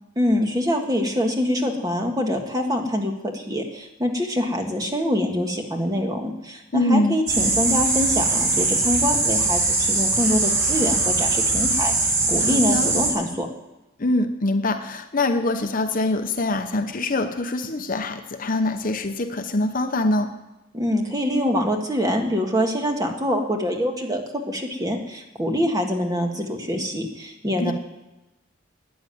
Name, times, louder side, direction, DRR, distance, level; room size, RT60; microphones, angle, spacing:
voice 1, 0.2-13.5 20.7-27.7, equal, 20° right, 2 dB, 1.7 m, -25 dB
voice 2, 6.7-7.2 12.4-12.9 14.0-20.4 27.6-27.7, left 2 dB, 40° left, 7 dB, 0.8 m, -24 dB
sound 1, 7.3-13.1, right 3 dB, 75° right, 5.6 m, -21 dB
13.0 x 9.8 x 9.2 m, 0.99 s
head